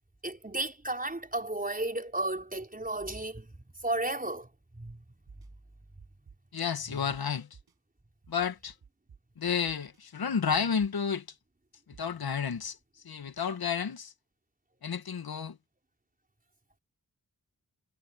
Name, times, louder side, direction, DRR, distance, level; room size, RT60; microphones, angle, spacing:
voice 1, 0.2-3.5 3.8-4.5 4.7-5.0, right 2 dB, 25° right, 5.0 m, -33 dB
sound 1, 4.8-4.9 5.3-5.5 6.0-6.6 7.1-7.2 7.5-7.7 8.2-9.2 9.7-10.0 10.5-11.1 11.9-12.3, right 6 dB, 80° right, 7.0 m, -54 dB
voice 2, 6.5-7.5 8.3-8.7 9.4-11.3 12.0-12.8 13.0-14.1 14.8-15.6, left 6 dB, 75° left, 1.9 m, -31 dB
cardioid pair, 45°, 37 cm